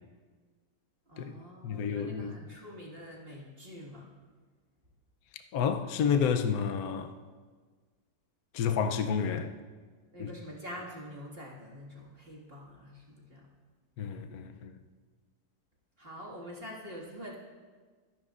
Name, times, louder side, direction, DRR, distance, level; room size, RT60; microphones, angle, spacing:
voice 1, 1.1-4.1 10.1-13.5 16.0-17.3, equal, 30° right, 2.0 m, -45 dB
voice 2, 1.6-2.4 5.5-7.1 8.5-9.5 10.2-10.3 14.0-14.7, left 7 dB, 65° left, 0.9 m, -30 dB
24.0 x 10.5 x 2.5 m
omnidirectional pair, 2.1 m